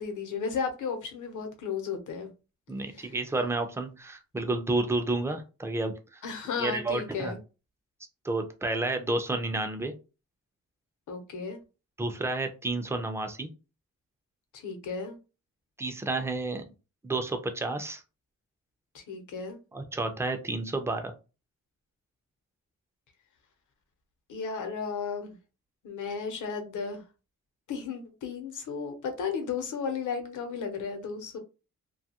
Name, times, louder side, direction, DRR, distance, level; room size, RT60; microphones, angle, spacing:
voice 1, 0.0-2.3 3.0-3.1 6.2-7.4 11.1-11.6 14.5-15.2 18.9-19.6 24.3-25.3 25.8-27.0 27.7-31.4, left 5 dB, 85° left, 0.8 m, -34 dB
voice 2, 2.7-6.2 6.6-7.3 8.2-9.9 12.0-13.5 15.8-16.6 17.0-18.0 19.7-21.1, right 2 dB, 10° right, 0.3 m, -30 dB
2.6 x 2.3 x 2.8 m
wide cardioid pair, 180°, 30 cm